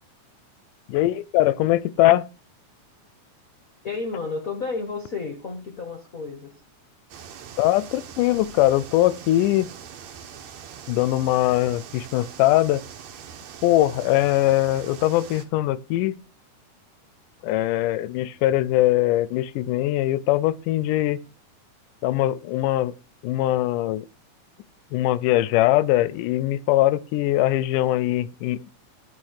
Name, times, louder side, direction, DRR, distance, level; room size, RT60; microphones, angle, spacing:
voice 1, 0.9-2.3 7.6-9.7 10.9-12.8 13.6-16.2 17.4-21.2 22.0-22.9 23.2-24.1 24.9-28.7, left 15 dB, 90° left, 2.2 m, -21 dB
voice 2, 3.8-6.5, left 4 dB, 55° left, 0.9 m, -31 dB
sound 1, 7.1-15.4, right 8 dB, 65° right, 2.2 m, -42 dB
11.5 x 4.7 x 6.5 m
omnidirectional pair, 3.6 m